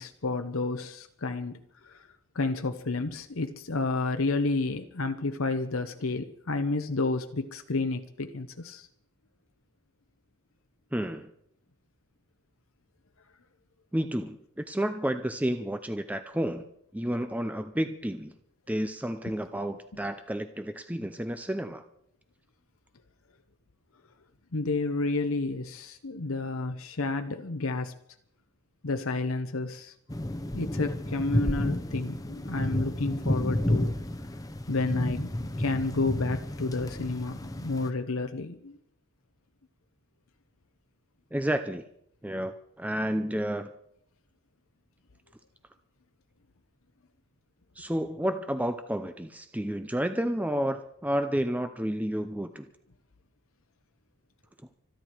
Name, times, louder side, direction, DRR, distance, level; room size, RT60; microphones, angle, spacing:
voice 1, 0.0-2.1 2.3-8.9 24.5-27.9 28.8-29.9 30.5-33.9 34.7-38.8, left 3 dB, 65° left, 7 dB, 0.9 m, -30 dB
voice 2, 10.9-11.3 13.9-16.7 16.9-18.3 18.7-21.8 41.3-41.8 42.2-43.7 47.8-52.7, right 1 dB, 5° right, 8 dB, 0.6 m, -31 dB
sound 1, 30.1-37.9, left 1 dB, 15° left, 0.9 m, -31 dB
25.5 x 10.5 x 4.6 m, 0.72 s
head